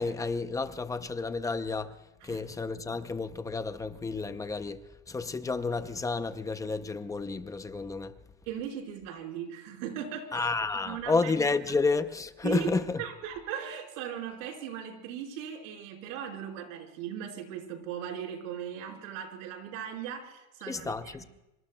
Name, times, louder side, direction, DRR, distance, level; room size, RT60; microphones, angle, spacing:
voice 1, 0.0-2.0 2.2-8.1 10.3-13.0 20.7-21.2, left 4 dB, 10° left, 0.5 m, -31 dB
voice 2, 8.5-10.5 10.8-11.3 12.4-12.7 13.0-20.9 21.2-21.3, right 9 dB, 65° right, 4.6 m, -38 dB
26.0 x 25.0 x 2.2 m
supercardioid pair, 150°, 42 cm